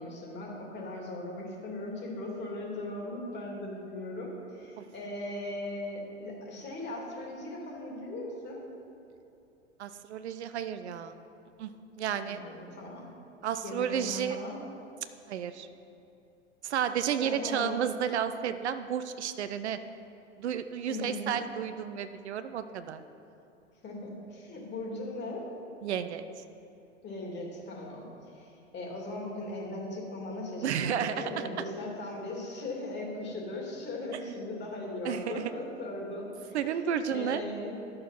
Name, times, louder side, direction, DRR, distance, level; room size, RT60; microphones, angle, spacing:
voice 1, 0.0-8.6 12.2-13.1 13.6-14.6 17.2-17.7 20.9-21.4 23.8-25.5 27.0-36.6 37.1-37.7, left 2 dB, 30° left, -1 dB, 2.6 m, -38 dB
voice 2, 9.8-11.1 11.6-11.7 12.0-12.4 13.4-14.4 15.3-15.7 16.6-19.8 20.4-23.0 25.8-26.2 30.6-31.5 35.0-35.5 36.5-37.4, right 8 dB, 65° right, 10 dB, 0.6 m, -32 dB
12.0 x 6.4 x 5.8 m, 2.8 s
figure-of-eight pair, 90°, 36 cm